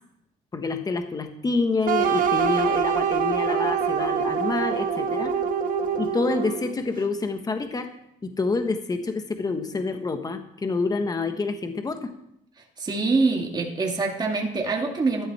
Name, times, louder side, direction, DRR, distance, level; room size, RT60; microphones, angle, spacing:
voice 1, 0.5-5.4 6.0-7.9 8.2-12.1, left 3 dB, 20° left, 7 dB, 1.3 m, -27 dB
sound 1, 1.9-6.8, right 6 dB, 55° right, 1.6 m, -24 dB
voice 2, 12.8-15.3, right 3 dB, 25° right, 0 dB, 2.4 m, -24 dB
13.5 x 11.5 x 4.3 m, 0.79 s
cardioid pair, 110°, 17 cm